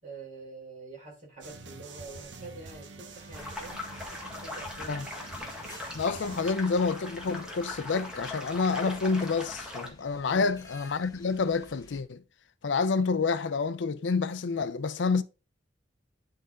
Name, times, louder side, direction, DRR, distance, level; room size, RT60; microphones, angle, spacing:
voice 1, 0.0-5.4 10.2-10.6, right 3 dB, 40° right, 4.0 m, -46 dB
sound 1, 1.4-6.5, right 3 dB, 70° right, 0.9 m, -46 dB
sound 2, 3.1-12.0, left 2 dB, 20° left, 1.2 m, -55 dB
sound 3, 3.3-9.9, left 2 dB, 5° right, 1.6 m, -40 dB
voice 2, 5.9-12.2 12.6-15.2, left 4 dB, 75° left, 0.5 m, -28 dB
9.6 x 3.9 x 3.8 m
head